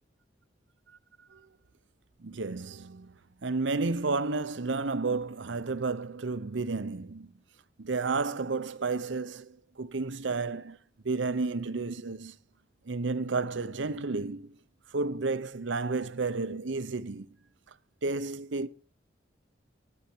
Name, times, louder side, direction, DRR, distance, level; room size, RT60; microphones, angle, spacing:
voice 1, 2.2-3.2 3.4-7.3 7.8-10.8 11.0-12.4 12.8-14.6 14.9-17.3 18.0-18.7, right 3 dB, 90° right, 0.8 m, -32 dB
13.5 x 9.7 x 4.5 m
head